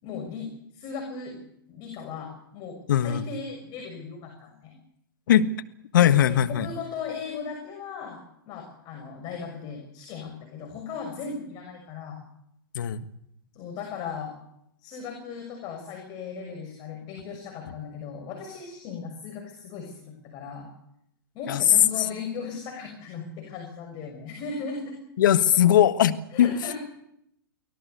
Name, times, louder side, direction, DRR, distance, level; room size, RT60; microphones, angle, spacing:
voice 1, 0.0-1.4 1.7-4.7 6.0-12.2 13.5-14.3 14.8-20.7 21.3-25.0 26.3-26.8, left 5 dB, 35° left, 3 dB, 6.4 m, -37 dB
voice 2, 2.9-3.2 5.3-5.5 5.9-6.7 12.7-13.0 21.5-21.6 25.2-26.5, left 10 dB, 60° left, 10 dB, 1.5 m, -20 dB
24.5 x 18.0 x 8.1 m, 0.77 s
hypercardioid pair, 110°, 12 cm